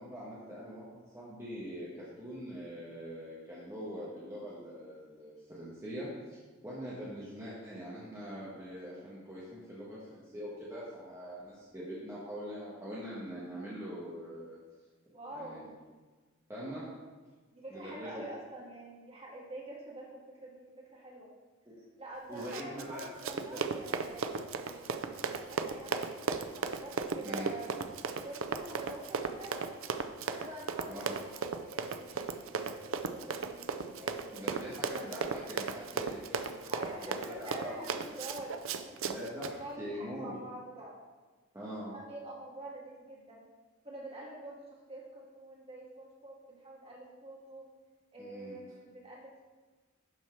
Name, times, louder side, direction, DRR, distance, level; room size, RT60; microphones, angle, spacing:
voice 1, 0.0-14.6 15.3-15.7 16.5-16.8 17.7-18.2 22.3-23.6 27.2-27.5 30.9-31.1 34.3-36.7 37.0-38.0 39.0-40.4 41.5-42.0 48.2-48.6, equal, 15° right, -9 dB, 1.5 m, -43 dB
voice 2, 15.1-15.6 17.5-21.3 22.0-27.7 28.2-29.8 30.3-35.2 36.7-39.0 39.6-41.0 41.9-43.4 43.8-47.7 48.1-49.4, right 1 dB, 30° right, -5 dB, 2.1 m, -47 dB
Run, 22.4-39.5, right 5 dB, 80° right, 0.5 m, -36 dB
11.5 x 4.4 x 4.7 m, 1.3 s
head